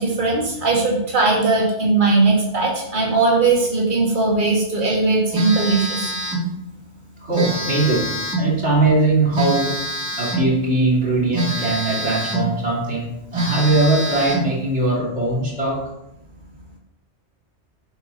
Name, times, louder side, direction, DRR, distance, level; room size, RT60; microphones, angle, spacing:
voice 1, 0.0-6.2, right 3 dB, 45° right, -3 dB, 2.4 m, -19 dB
Telephone, 5.3-6.5 7.3-8.5 9.3-10.5 11.3-12.5 12.9-13.0 13.3-14.5, right 1 dB, 15° right, 2.5 m, -25 dB
voice 2, 7.2-9.9 10.2-15.9, right 2 dB, 85° right, -4 dB, 3.5 m, -20 dB
11.0 x 8.0 x 4.2 m, 0.84 s
omnidirectional pair, 1.1 m